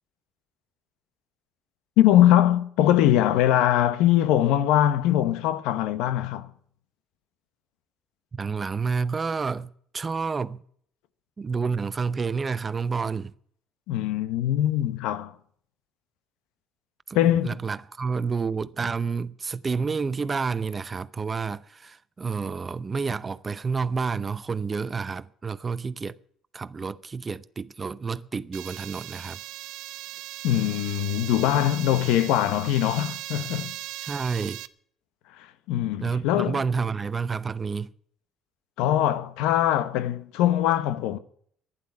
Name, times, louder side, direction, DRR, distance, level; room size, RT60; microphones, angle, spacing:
voice 1, 2.0-6.5 13.9-15.3 17.1-17.5 30.4-33.7 35.4-36.6 38.8-41.2, left 12 dB, 85° left, 1.0 m, -22 dB
voice 2, 8.3-10.6 11.4-13.3 17.1-26.2 26.5-29.4 34.0-34.6 36.0-37.9, right 5 dB, 30° right, 0.6 m, -29 dB
sound 1, 28.5-34.7, right 16 dB, 80° right, 0.6 m, -38 dB
11.5 x 10.5 x 9.6 m
cardioid pair, 100°, 0 cm